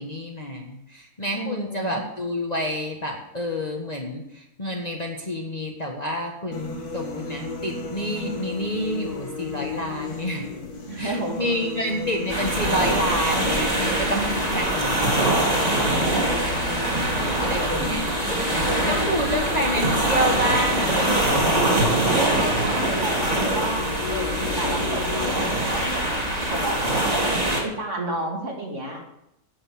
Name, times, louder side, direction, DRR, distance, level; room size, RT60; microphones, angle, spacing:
voice 1, 0.0-10.5 10.9-16.1 17.4-18.0 18.9-21.6, equal, 25° left, 0 dB, 1.4 m, -29 dB
voice 2, 1.3-2.0 10.9-11.6 15.8-16.7 17.3-18.0 18.6-19.2 22.2-27.0 27.6-29.0, right 2 dB, 50° right, -1 dB, 2.9 m, -32 dB
sound 1, 6.5-25.5, left 4 dB, 75° left, 2.2 m, -34 dB
sound 2, 12.3-27.6, right 1 dB, 25° right, 2.4 m, -23 dB
10.0 x 8.0 x 7.8 m, 0.84 s
omnidirectional pair, 1.6 m